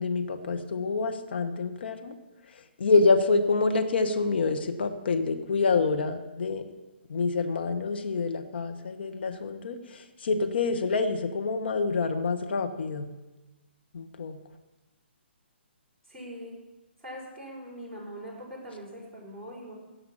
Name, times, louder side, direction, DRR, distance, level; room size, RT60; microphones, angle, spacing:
voice 1, 0.0-2.1 2.8-6.6 7.1-13.1 13.9-14.4, left 4 dB, 60° left, 6 dB, 1.2 m, -27 dB
voice 2, 16.1-16.6 17.0-19.7, equal, ahead, -7 dB, 5.2 m, -42 dB
16.5 x 5.7 x 7.1 m, 1.1 s
figure-of-eight pair, 135°, 6 cm